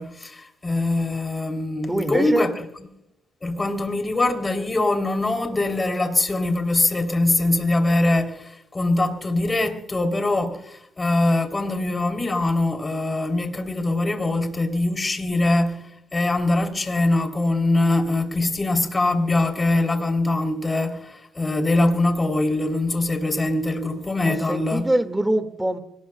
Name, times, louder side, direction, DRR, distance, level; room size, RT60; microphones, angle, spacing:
voice 1, 0.0-2.5 3.4-24.9, left 2 dB, 25° left, 3.3 m, -23 dB
voice 2, 1.9-2.5 24.2-25.8, right 1 dB, 10° right, 2.1 m, -23 dB
25.5 x 19.5 x 2.3 m
cardioid pair, 90°, 0 cm